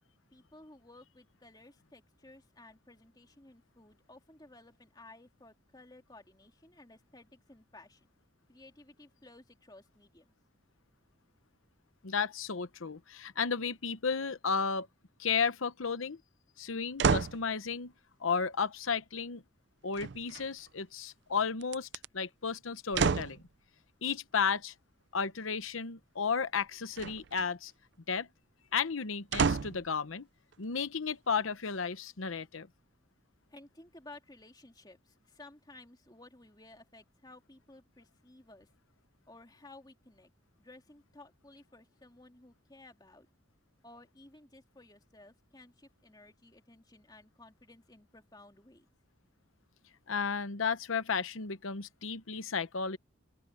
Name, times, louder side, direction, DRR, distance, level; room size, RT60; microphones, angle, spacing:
voice 1, 0.3-8.1 8.5-10.3 33.5-38.7 39.3-40.3 40.6-43.3 43.8-48.9, left 2 dB, 20° left, 2.7 m, -56 dB
voice 2, 12.0-14.9 15.2-16.2 16.6-17.9 18.2-19.4 19.8-21.9 22.1-23.4 24.0-24.7 25.1-27.7 28.1-28.3 28.7-30.3 30.6-32.7 50.1-53.0, left 5 dB, 85° left, 0.9 m, -33 dB
sound 1, 17.0-17.4 19.9-20.7 21.6-22.1 22.9-23.4 27.0-27.5 29.3-29.9 30.5-30.6, right 5 dB, 60° right, 0.5 m, -30 dB
open air
head